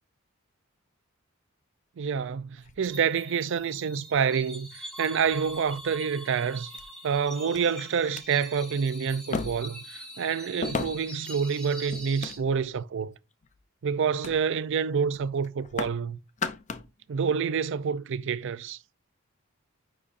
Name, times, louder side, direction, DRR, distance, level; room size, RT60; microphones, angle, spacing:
voice 1, 2.0-6.7 7.0-13.1 13.8-16.2 17.1-18.8, right 6 dB, 65° right, 0.4 m, -28 dB
sound 1, 2.6-3.6 4.5-4.6 5.2-5.8 6.7-6.8 7.5-7.6 8.0-8.2 9.3-9.8 10.6-11.2 11.9-12.8 13.3-13.6 14.2-14.4 14.7-14.9 15.1-16.0 16.3-16.9 17.3-17.4, left 4 dB, 35° left, 0.5 m, -36 dB
sound 2, 2.9-12.4, equal, 5° left, 1.9 m, -43 dB
9.7 x 4.3 x 2.5 m
head